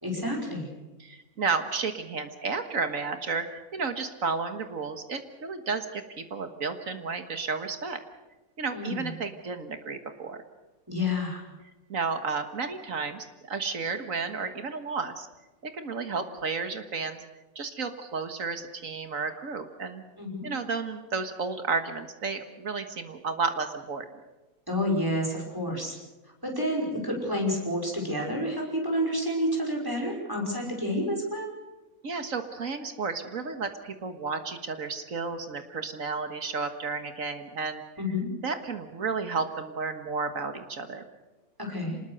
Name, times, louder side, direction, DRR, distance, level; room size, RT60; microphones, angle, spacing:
voice 1, 0.0-0.7 8.7-9.1 10.9-11.4 20.2-20.5 24.7-26.0 26.4-31.5 38.0-38.3 41.6-42.0, left 1 dB, 15° right, 0 dB, 5.5 m, -29 dB
voice 2, 1.0-8.0 8.6-10.4 11.9-15.3 15.6-17.2 17.6-20.0 20.4-24.1 32.0-37.8 38.4-41.0, right 4 dB, 65° right, 8 dB, 1.9 m, -32 dB
26.0 x 20.0 x 6.6 m, 1.1 s
omnidirectional pair, 1.6 m